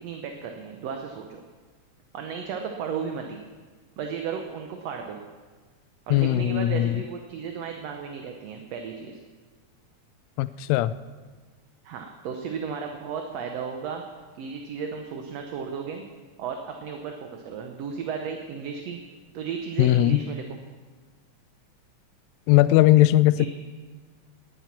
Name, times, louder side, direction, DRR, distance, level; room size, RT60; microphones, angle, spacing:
voice 1, 0.0-1.4 2.1-3.4 4.0-5.2 6.1-9.2 11.8-14.0 14.4-16.0 16.4-19.0 19.3-20.4 23.4-23.5, right 6 dB, 65° right, 3 dB, 1.9 m, -34 dB
voice 2, 6.1-6.9 10.4-10.9 19.8-20.2 22.5-23.5, left 15 dB, 80° left, 15 dB, 1.7 m, -19 dB
18.5 x 9.3 x 5.9 m, 1.4 s
omnidirectional pair, 3.5 m